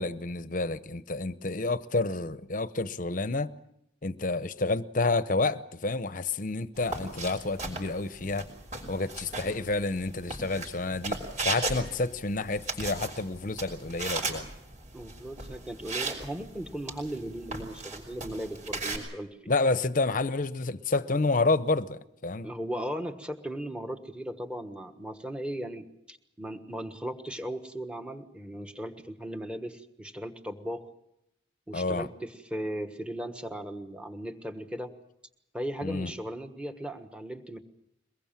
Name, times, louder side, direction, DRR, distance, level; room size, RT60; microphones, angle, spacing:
voice 1, 0.0-3.5 4.0-8.5 8.9-11.2 11.4-14.4 19.5-22.5 31.7-32.1 35.8-36.1, left 3 dB, 45° left, 0.8 m, -29 dB
sound 1, 6.8-19.0, right 3 dB, 40° right, 5.5 m, -37 dB
voice 2, 14.9-19.4 22.4-30.9 31.7-34.9 35.5-37.6, equal, 5° right, 1.4 m, -37 dB
23.0 x 21.0 x 7.4 m
head